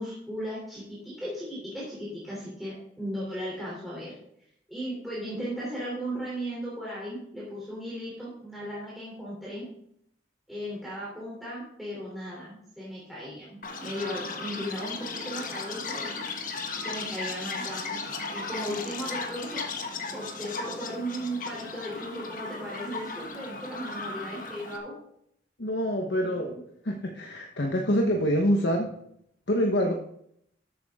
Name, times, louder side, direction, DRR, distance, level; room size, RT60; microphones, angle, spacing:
voice 1, 0.0-4.1 4.7-9.7 10.5-16.3 16.8-19.7 20.1-25.0 26.2-26.6, equal, ahead, -7 dB, 3.4 m, -36 dB
Chirp tweet, 13.6-24.8, left 4 dB, 45° left, 1.5 m, -36 dB
voice 2, 25.6-26.5 26.9-28.9 29.5-29.9, equal, 75° left, 2 dB, 1.3 m, -25 dB
13.5 x 8.4 x 3.7 m, 0.71 s
head